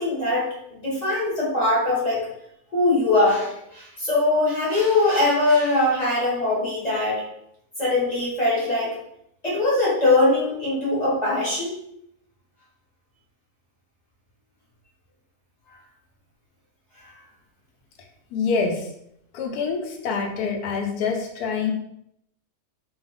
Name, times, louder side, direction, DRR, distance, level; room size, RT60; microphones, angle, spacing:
voice 1, 0.0-2.3 2.7-7.2 7.8-9.0 9.4-11.7, left 2 dB, 30° left, -8 dB, 1.0 m, -21 dB
voice 2, 18.3-18.9 19.3-21.7, left 5 dB, 80° left, 2 dB, 1.1 m, -26 dB
2.8 x 2.3 x 3.4 m, 0.76 s
omnidirectional pair, 1.6 m